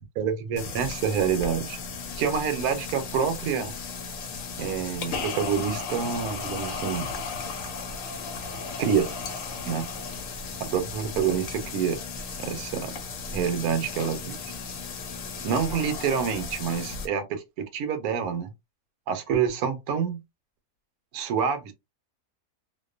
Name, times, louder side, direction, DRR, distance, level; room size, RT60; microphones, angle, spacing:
voice 1, 0.2-1.8 2.2-3.7 4.5-7.1 8.8-9.1 9.7-9.9 10.6-12.0 12.4-12.9 13.3-14.4 15.4-18.5 19.1-20.2 21.1-21.7, right 7 dB, 75° right, 1.1 m, -27 dB
sound 1, 0.6-17.1, left 4 dB, 65° left, 0.9 m, -35 dB
2.5 x 2.3 x 2.4 m
omnidirectional pair, 1.7 m